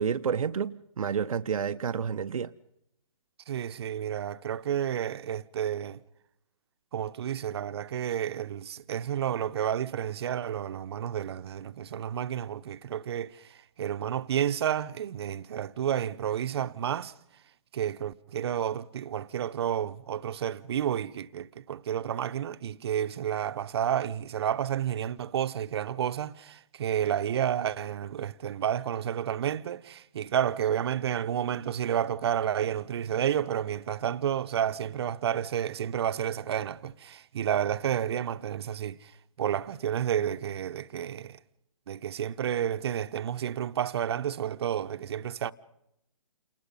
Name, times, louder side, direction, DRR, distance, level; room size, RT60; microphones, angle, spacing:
voice 1, 0.0-2.5, right 7 dB, 75° right, 0.7 m, -29 dB
voice 2, 3.5-6.0 6.9-17.1 17.7-39.1 39.4-41.4 41.9-45.5, right 9 dB, 45° right, 0.9 m, -30 dB
28.5 x 20.0 x 5.5 m
hypercardioid pair, 155°, 18 cm